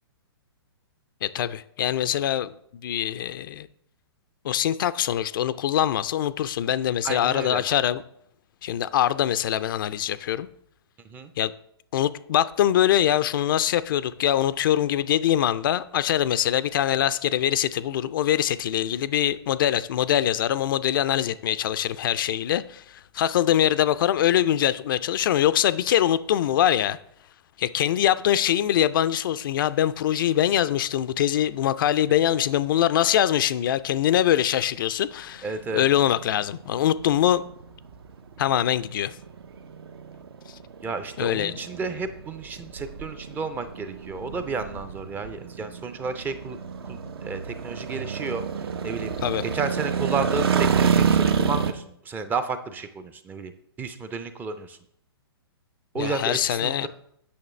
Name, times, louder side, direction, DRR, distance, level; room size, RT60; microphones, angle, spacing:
voice 1, 1.2-2.5 2.8-3.7 4.4-8.0 8.6-10.5 11.4-11.5 11.9-27.0 27.6-37.5 38.4-39.2 41.2-41.6 49.2-49.4 56.0-56.9, left 11 dB, 55° left, 0.4 m, -23 dB
voice 2, 7.0-7.6 11.0-11.3 35.4-35.9 40.8-46.6 46.9-49.1 49.5-53.5 53.8-54.8 55.9-56.9, right 4 dB, 15° right, 0.5 m, -32 dB
sound 1, 35.6-51.7, right 6 dB, 70° right, 0.7 m, -28 dB
8.5 x 6.1 x 3.2 m
hypercardioid pair, 125°, 14 cm